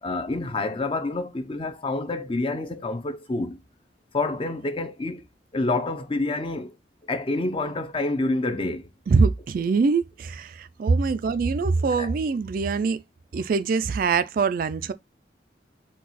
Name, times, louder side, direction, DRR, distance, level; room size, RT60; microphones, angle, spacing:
voice 1, 0.0-3.6 4.1-5.3 5.5-6.7 7.1-8.9 11.9-12.1, left 2 dB, 30° left, 0.6 m, -28 dB
voice 2, 9.1-13.0 13.3-14.9, right 4 dB, 50° right, 0.3 m, -23 dB
4.5 x 2.3 x 4.0 m
head